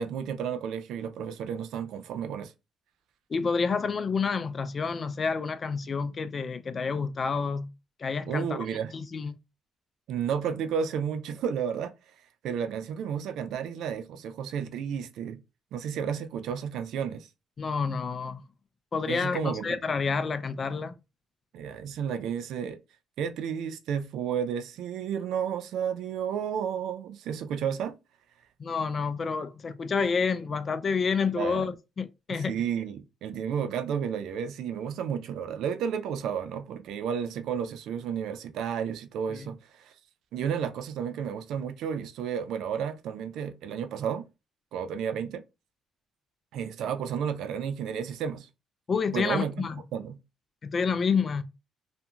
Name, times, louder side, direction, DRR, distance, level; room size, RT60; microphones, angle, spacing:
voice 1, 0.0-2.5 8.3-8.9 10.1-11.9 12.4-15.4 15.7-17.3 19.1-19.8 21.5-22.8 23.2-27.9 31.3-31.7 32.3-39.9 40.3-44.2 44.7-45.4 46.5-48.5 49.1-49.7 49.9-50.2, right 7 dB, 80° right, 0.4 m, -32 dB
voice 2, 3.3-7.7 8.0-8.7 8.9-9.4 17.6-18.4 18.9-21.0 28.6-32.6 39.3-39.5 48.9-49.8 50.6-51.4, left 5 dB, 45° left, 0.4 m, -29 dB
2.7 x 2.5 x 2.3 m
cardioid pair, 75°, 0 cm